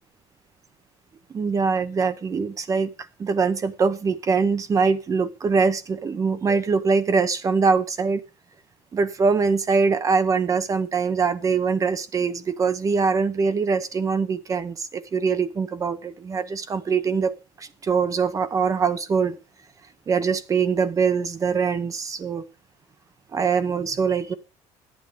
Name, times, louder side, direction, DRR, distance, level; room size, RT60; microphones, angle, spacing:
voice 1, 1.3-2.9 3.2-8.2 8.9-19.4 20.1-22.5 23.3-24.3, right 5 dB, 30° right, 0.9 m, -23 dB
12.0 x 8.8 x 5.2 m
cardioid pair, 135°, 12 cm